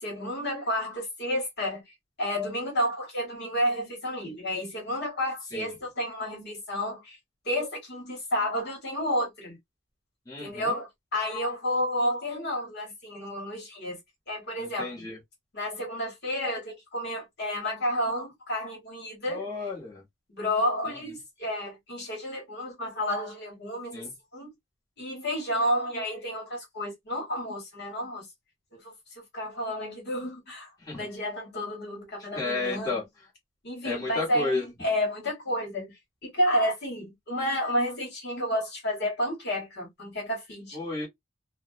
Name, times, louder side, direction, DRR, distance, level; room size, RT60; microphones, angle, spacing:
voice 1, 0.0-1.8 2.2-7.2 7.4-9.6 10.4-14.0 14.3-15.1 15.5-19.5 20.3-24.1 24.3-24.5 25.0-28.3 28.7-30.7 31.0-33.0 33.6-35.9 36.2-40.8, equal, 55° left, 1.2 m, -31 dB
voice 2, 10.3-10.7 14.6-15.2 19.3-20.0 20.9-21.0 23.9-24.1 30.8-31.0 32.3-33.0 33.8-34.7 40.7-41.1, left 3 dB, 15° left, 1.1 m, -32 dB
2.5 x 2.1 x 2.3 m
head